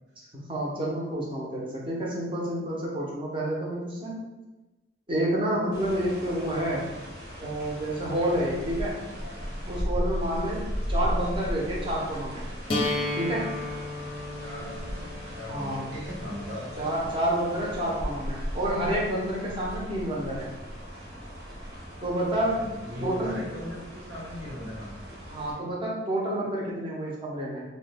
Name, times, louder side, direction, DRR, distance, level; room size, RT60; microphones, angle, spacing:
voice 1, 0.5-4.2 5.1-6.9 7.4-9.0 9.7-12.5 13.2-13.5 15.5-15.9 16.8-20.5 22.0-22.6 23.0-23.3 25.3-27.6, right 1 dB, 30° right, -4 dB, 0.7 m, -29 dB
sound 1, 5.7-25.5, equal, 60° right, 1.1 m, -36 dB
sound 2, 12.7-18.7, left 2 dB, 30° left, 0.6 m, -34 dB
voice 2, 14.4-16.9 22.4-24.9 25.6-25.7, equal, 80° right, -5 dB, 1.2 m, -39 dB
2.9 x 2.1 x 3.3 m, 1.1 s
head